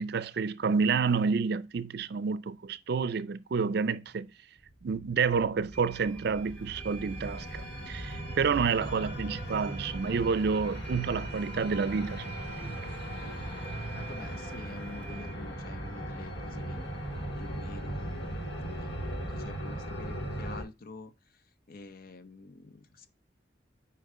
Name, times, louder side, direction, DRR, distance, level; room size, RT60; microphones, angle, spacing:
voice 1, 0.0-4.3 4.8-12.3 12.6-12.7, right 5 dB, 60° right, 0.4 m, -29 dB
sound 1, 4.7-20.6, right 1 dB, 75° left, 3.6 m, -38 dB
sound 2, 5.7-15.3, right 7 dB, 5° left, 0.6 m, -49 dB
voice 2, 13.9-16.9 17.4-23.1, left 3 dB, 55° left, 0.7 m, -48 dB
6.6 x 4.6 x 3.6 m
head